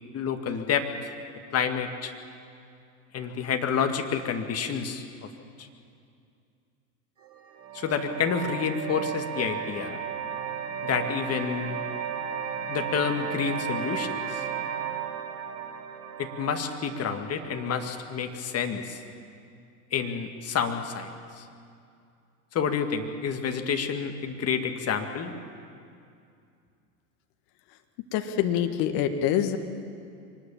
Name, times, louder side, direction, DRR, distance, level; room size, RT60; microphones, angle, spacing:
voice 1, 0.1-1.1 1.5-2.1 3.1-5.3 5.6-5.7 7.7-10.0 10.8-11.8 12.7-14.4 16.2-19.0 19.9-21.5 22.5-25.3, left 6 dB, 30° left, 6 dB, 2.1 m, -29 dB
sound 1, 7.2-18.2, right 7 dB, 45° right, 3.7 m, -35 dB
voice 2, 28.1-29.6, left 10 dB, 50° left, 7 dB, 1.9 m, -25 dB
24.0 x 20.0 x 7.3 m, 2.4 s
hypercardioid pair, 85°, 46 cm